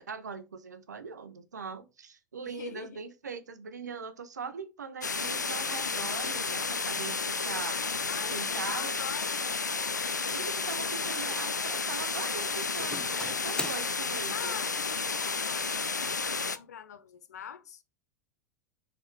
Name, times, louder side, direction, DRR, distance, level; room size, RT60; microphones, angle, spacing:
voice 1, 0.0-7.8 8.3-9.0 10.3-14.6, right 5 dB, 75° right, 1.0 m, -41 dB
voice 2, 2.5-3.0 8.1-9.7 14.3-17.8, left 8 dB, 65° left, 0.9 m, -44 dB
sound 1, 5.0-16.6, left 4 dB, 80° left, 0.5 m, -32 dB
Doorbell, 10.9-11.3 11.6-12.1 12.5-13.7, left 3 dB, 10° left, 0.4 m, -43 dB
6.4 x 4.1 x 4.6 m
figure-of-eight pair, 85°, 9 cm